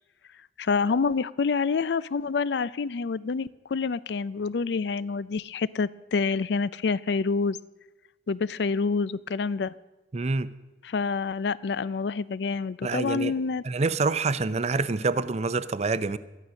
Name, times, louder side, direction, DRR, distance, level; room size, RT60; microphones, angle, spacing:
voice 1, 0.6-7.6 8.3-9.7 10.8-13.6, left 4 dB, 70° left, 19 dB, 0.4 m, -27 dB
voice 2, 10.1-10.5 12.8-13.3 13.6-16.2, right 3 dB, 40° right, 15 dB, 0.5 m, -26 dB
13.0 x 10.5 x 6.3 m, 1.1 s
head